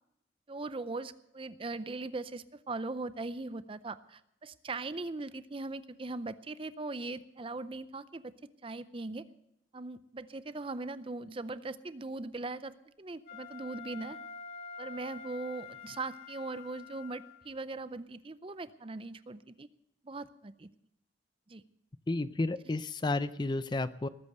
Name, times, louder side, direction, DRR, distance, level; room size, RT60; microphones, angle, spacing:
voice 1, 0.5-8.3 8.6-9.3 9.7-14.2 14.8-19.7 20.0-20.7 21.5-21.6, right 3 dB, 30° right, 14 dB, 0.5 m, -40 dB
Wind instrument woodwind instrument, 13.2-17.5, left 6 dB, 55° left, 2.4 m, -47 dB
voice 2, 22.1-24.1, left 2 dB, 25° left, 14 dB, 0.4 m, -32 dB
19.5 x 8.5 x 6.7 m, 0.80 s
head